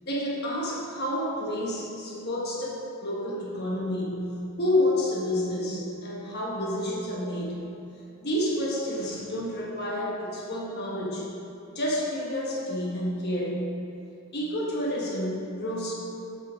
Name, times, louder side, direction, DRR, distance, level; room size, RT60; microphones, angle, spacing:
voice 1, 0.0-4.3 4.6-7.6 8.2-11.3 11.7-13.6 14.3-15.9, left 1 dB, 50° left, -3 dB, 1.3 m, -29 dB
8.2 x 5.6 x 5.1 m, 2.7 s
head